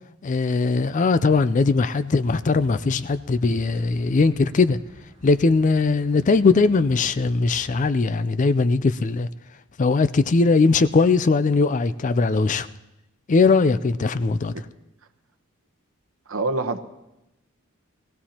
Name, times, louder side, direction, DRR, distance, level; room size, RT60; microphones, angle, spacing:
voice 1, 0.2-4.8 5.2-9.3 9.8-12.7 13.3-14.7, left 4 dB, 35° left, 0.4 m, -20 dB
sound 1, 2.2-7.9, right 1 dB, 30° right, 2.9 m, -50 dB
voice 2, 16.3-16.8, right 2 dB, 70° right, 0.9 m, -25 dB
22.0 x 16.0 x 2.9 m
head